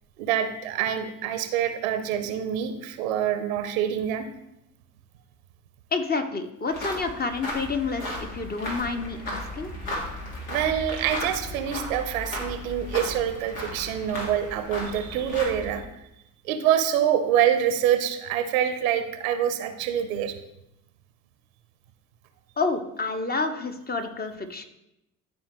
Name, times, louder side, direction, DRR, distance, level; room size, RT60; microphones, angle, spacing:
voice 1, 0.2-4.3 10.5-15.8 16.4-20.3, right 9 dB, 75° right, 9 dB, 0.8 m, -26 dB
voice 2, 5.9-9.7 22.6-24.7, left 4 dB, 25° left, 7 dB, 1.0 m, -29 dB
sound 1, 6.7-15.8, left 1 dB, 75° left, 2.0 m, -35 dB
12.0 x 4.4 x 3.1 m, 0.85 s
hypercardioid pair, 55°, 41 cm